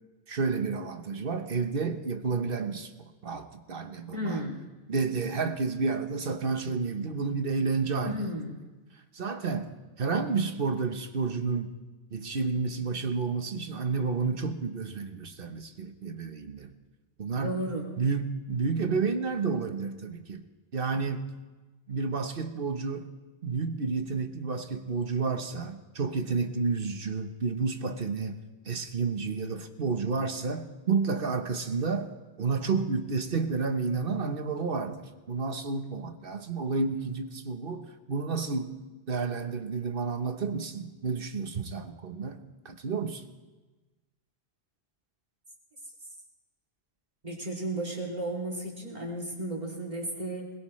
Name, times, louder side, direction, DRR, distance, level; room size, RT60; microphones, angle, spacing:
voice 1, 0.3-2.9 3.2-4.4 4.9-8.2 9.1-11.7 12.1-16.7 17.2-17.6 18.0-20.4 20.7-21.4 21.9-23.1 23.4-28.4 28.6-32.1 32.4-38.8 39.1-43.2, right 4 dB, 60° right, 7 dB, 1.2 m, -30 dB
voice 2, 4.1-4.6 8.0-8.6 17.3-17.9 47.2-50.5, right 1 dB, 45° right, -2 dB, 3.1 m, -34 dB
22.0 x 20.5 x 3.2 m, 1.2 s
omnidirectional pair, 1.1 m